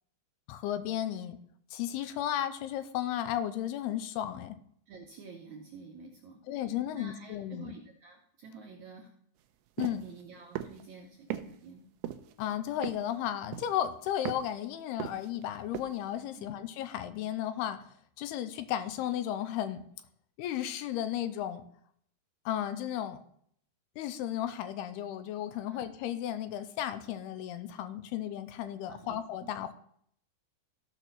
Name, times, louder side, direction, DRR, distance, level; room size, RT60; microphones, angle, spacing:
voice 1, 0.5-1.4 1.7-4.6 6.5-7.7 9.8-10.0 12.4-17.8 18.2-19.8 20.4-21.6 22.5-23.2 24.0-29.7, left 11 dB, 85° left, 10 dB, 2.6 m, -34 dB
voice 2, 4.9-6.4 6.9-9.1 10.0-11.8 16.4-16.5 25.7-25.8 28.9-29.5, right 4 dB, 70° right, 1 dB, 1.8 m, -49 dB
sound 1, 9.8-10.0 10.6-10.8 11.3-11.5 12.0-12.3 12.8-13.2 13.5-13.9 14.3-14.5 15.0-15.4 15.7-15.9, right 12 dB, 85° right, 2.7 m, -37 dB
15.0 x 6.3 x 4.1 m, 0.65 s
omnidirectional pair, 4.7 m